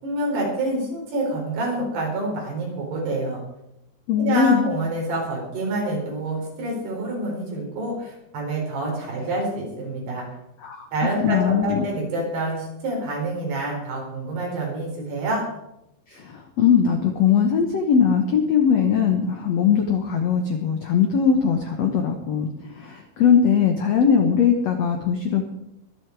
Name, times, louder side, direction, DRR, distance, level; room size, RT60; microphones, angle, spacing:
voice 1, 0.0-3.4 4.2-10.3 10.9-15.5, right 2 dB, 80° right, -2 dB, 6.4 m, -27 dB
voice 2, 4.1-4.7 10.6-10.9 11.2-11.8 16.1-25.5, left 7 dB, 70° left, 4 dB, 1.6 m, -20 dB
23.5 x 8.0 x 4.8 m, 0.86 s
omnidirectional pair, 4.7 m